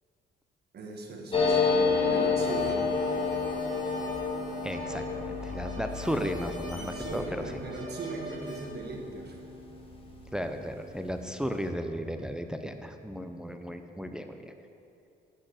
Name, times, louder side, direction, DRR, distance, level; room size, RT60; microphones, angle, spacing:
voice 1, 0.7-2.9 6.8-9.4, right 2 dB, 55° right, 1 dB, 1.5 m, -39 dB
sound 1, 1.3-10.5 10.8-10.9 11.1-11.6, left 4 dB, 30° left, 1.4 m, -30 dB
sound 2, 2.3-8.7, right 1 dB, 25° right, 1.9 m, -44 dB
voice 2, 4.6-7.2 10.3-14.5, equal, 5° right, 6 dB, 0.5 m, -35 dB
8.3 x 6.4 x 6.3 m, 2.6 s
cardioid pair, 90°, 20 cm